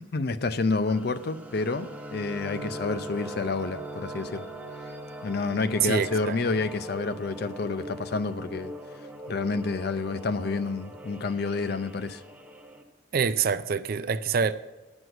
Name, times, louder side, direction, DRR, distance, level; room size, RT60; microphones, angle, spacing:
voice 1, 0.1-4.5 5.2-8.7 9.3-12.2, left 3 dB, 55° left, 0.5 m, -29 dB
sound 1, 0.9-12.8, right 1 dB, 10° right, 0.8 m, -41 dB
voice 2, 5.8-6.4 13.1-14.5, right 6 dB, 50° right, 0.4 m, -26 dB
9.4 x 6.2 x 7.9 m
head